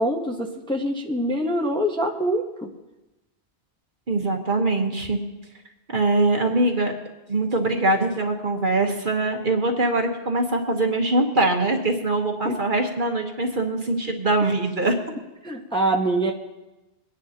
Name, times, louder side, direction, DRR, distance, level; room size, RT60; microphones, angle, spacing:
voice 1, 0.0-2.4 12.4-12.6 15.4-16.3, right 1 dB, 5° left, 0 dB, 0.9 m, -24 dB
voice 2, 4.1-5.2 5.9-6.9 7.3-15.0, right 2 dB, 50° right, 3 dB, 1.3 m, -22 dB
23.0 x 10.0 x 2.9 m, 1.0 s
omnidirectional pair, 1.1 m